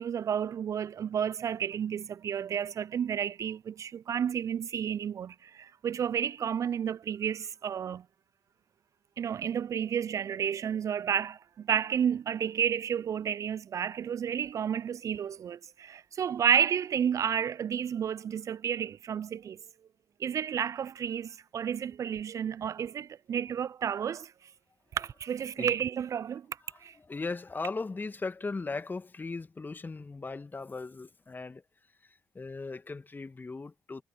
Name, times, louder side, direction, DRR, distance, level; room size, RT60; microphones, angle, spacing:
voice 1, 0.0-8.0 9.2-19.6 20.2-24.3 24.9-26.5 26.8-26.9, right 8 dB, 50° right, 0.6 m, -31 dB
voice 2, 26.7-31.6 32.0-34.0, left 3 dB, 25° left, 2.1 m, -38 dB
figure-of-eight pair, 45°, 7 cm